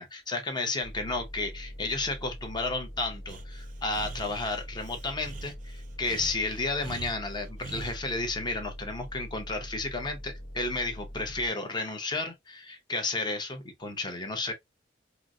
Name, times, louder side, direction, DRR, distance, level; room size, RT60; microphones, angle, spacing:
voice 1, 0.0-14.5, left 3 dB, 25° left, 0.7 m, -32 dB
sound 1, 0.8-11.5, equal, 75° left, 1.1 m, -43 dB
Breathing, 3.3-8.0, right 3 dB, 45° right, 0.4 m, -44 dB
3.9 x 2.0 x 2.4 m
head